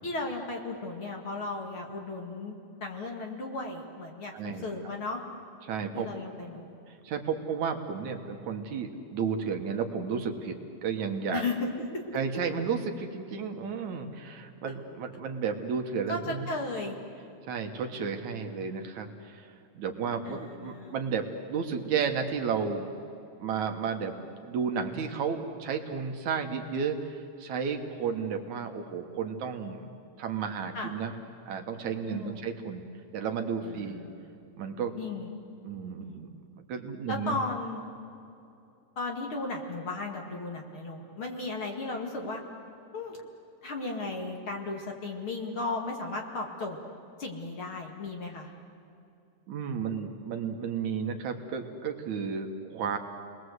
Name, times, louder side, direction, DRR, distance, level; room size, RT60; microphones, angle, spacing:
voice 1, 0.0-2.5 2.8-5.2 5.9-6.7 11.3-12.0 14.6-14.7 16.1-17.0 20.3-20.9 30.7-30.9 32.0-32.4 33.6-34.3 35.0-35.3 36.0-36.2 37.1-37.8 39.0-42.4 42.9-43.2 43.6-46.8 47.2-48.5, left 3 dB, 45° left, 1 dB, 2.6 m, -35 dB
voice 2, 4.3-4.7 5.6-6.1 6.9-11.5 12.1-16.4 17.5-22.9 23.4-29.9 30.2-31.1 31.5-32.8 33.1-34.0 34.6-34.9 35.6-36.3 36.7-37.3 49.5-53.0, right 6 dB, 65° right, 5 dB, 2.7 m, -33 dB
29.5 x 21.0 x 8.0 m, 2.7 s
omnidirectional pair, 3.7 m